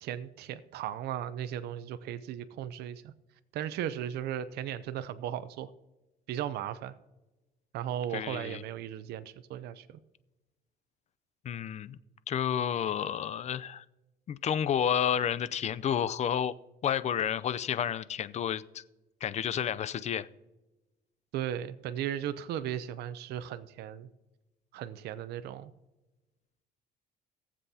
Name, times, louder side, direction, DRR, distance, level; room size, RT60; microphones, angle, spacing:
voice 1, 0.0-3.1 3.5-5.7 6.3-6.9 7.7-10.0 21.3-24.1 24.7-25.7, right 10 dB, 75° right, 12 dB, 0.6 m, -36 dB
voice 2, 8.1-8.6 11.4-12.0 12.3-13.8 14.3-16.5 16.8-18.8 19.2-20.3, left 9 dB, 40° left, 16 dB, 0.5 m, -30 dB
19.0 x 7.6 x 2.8 m, 1.1 s
cardioid pair, 110°, 17 cm